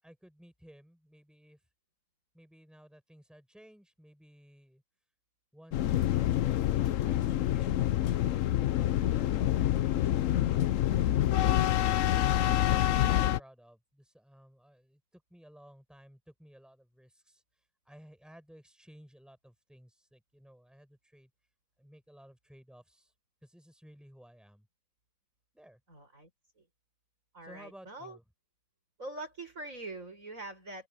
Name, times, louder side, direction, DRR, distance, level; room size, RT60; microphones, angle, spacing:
voice 1, 0.0-1.6 2.3-4.8 5.5-9.4 9.8-17.4 17.8-21.3 21.8-23.1 23.4-24.7 25.5-25.8 27.4-28.2, equal, ahead, 7.5 m, -56 dB
sound 1, 5.7-13.4, left 12 dB, 70° left, 0.8 m, -27 dB
voice 2, 25.9-26.3 26.6-26.7 27.3-28.2 29.0-30.9, right 2 dB, 45° right, 6.4 m, -43 dB
open air
omnidirectional pair, 2.0 m